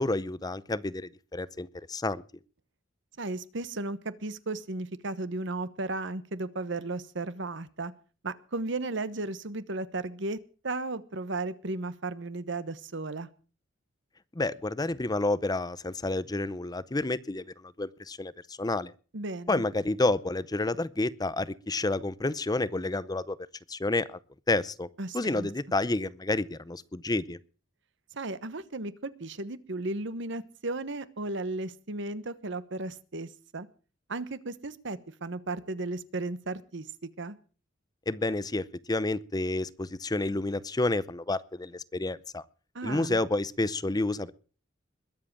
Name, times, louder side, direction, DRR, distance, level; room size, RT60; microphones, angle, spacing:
voice 1, 0.0-2.2 14.3-18.9 19.5-23.4 23.7-24.2 24.5-24.9 25.1-27.4 38.1-42.4 42.8-44.3, left 2 dB, 20° left, 17 dB, 0.6 m, -30 dB
voice 2, 3.2-7.9 8.2-10.4 10.6-13.3 19.1-19.6 25.0-25.5 28.1-33.7 34.1-37.4 42.7-43.2, right 2 dB, 65° right, 15 dB, 1.1 m, -35 dB
21.5 x 7.6 x 7.4 m, 0.39 s
head